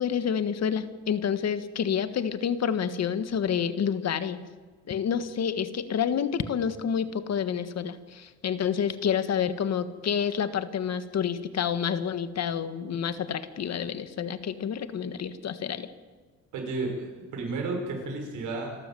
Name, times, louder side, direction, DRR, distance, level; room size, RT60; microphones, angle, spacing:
voice 1, 0.0-4.4 4.9-15.9, left 8 dB, 60° left, 11 dB, 1.6 m, -28 dB
voice 2, 16.5-18.8, right 3 dB, 85° right, 2 dB, 6.4 m, -32 dB
28.0 x 13.0 x 7.8 m, 1.4 s
cardioid pair, 90°, 30 cm